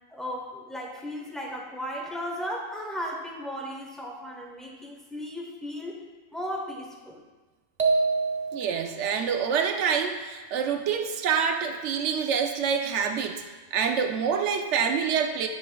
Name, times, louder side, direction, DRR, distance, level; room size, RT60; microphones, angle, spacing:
voice 1, 0.1-6.0 6.3-7.2, equal, ahead, -1 dB, 0.6 m, -35 dB
sound 1, 7.8-9.0, right 4 dB, 40° right, 0.6 m, -25 dB
voice 2, 8.5-13.4 13.7-15.5, right 6 dB, 75° right, 5 dB, 0.9 m, -26 dB
8.0 x 6.2 x 2.2 m, 1.3 s
omnidirectional pair, 1.2 m